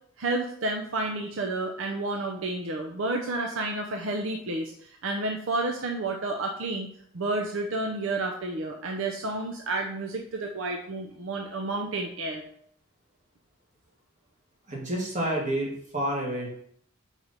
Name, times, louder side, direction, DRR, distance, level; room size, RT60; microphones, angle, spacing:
voice 1, 0.2-4.7 5.0-6.9 7.1-12.4, right 2 dB, 70° right, 2 dB, 0.6 m, -30 dB
voice 2, 14.7-16.5, right 1 dB, 35° right, -2 dB, 1.8 m, -29 dB
4.6 x 4.1 x 5.2 m, 0.63 s
head